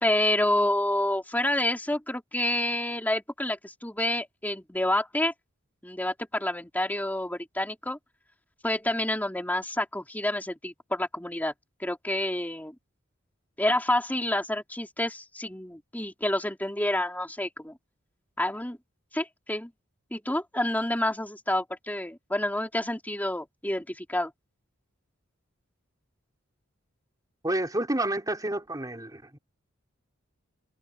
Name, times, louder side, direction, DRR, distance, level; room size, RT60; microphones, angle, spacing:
voice 1, 0.0-5.3 5.8-8.0 8.6-11.5 11.8-12.7 13.6-17.7 18.4-18.8 19.1-19.7 20.1-24.3, left 1 dB, 10° left, 3.5 m, -28 dB
voice 2, 27.4-29.4, right 1 dB, 20° right, 3.8 m, -29 dB
head